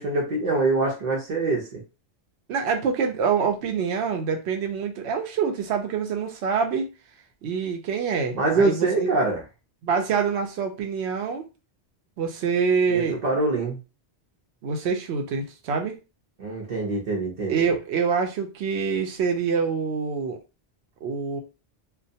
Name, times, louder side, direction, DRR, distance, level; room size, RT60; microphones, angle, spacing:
voice 1, 0.0-1.8 8.3-9.4 12.9-13.8 16.4-17.7, right 3 dB, 50° right, -2 dB, 0.7 m, -24 dB
voice 2, 2.5-6.9 7.4-9.1 9.8-11.4 12.2-13.2 14.6-16.0 17.5-20.4 21.0-21.4, right 6 dB, 80° right, 4 dB, 0.9 m, -25 dB
2.2 x 2.1 x 2.7 m, 0.29 s
omnidirectional pair, 1.1 m